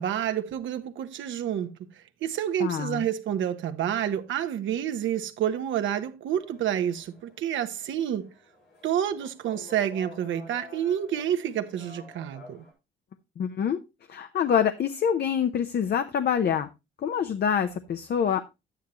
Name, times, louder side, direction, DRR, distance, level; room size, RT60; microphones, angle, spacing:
voice 1, 0.0-1.7 2.2-8.3 8.8-12.6, right 10 dB, 75° right, 1.0 m, -29 dB
voice 2, 2.6-3.1 13.4-13.8 14.1-16.7 17.0-18.4, left 8 dB, 55° left, 0.7 m, -26 dB
sound 1, 6.3-12.7, left 4 dB, 90° left, 5.3 m, -50 dB
10.5 x 9.2 x 3.0 m
cardioid pair, 90°, 20 cm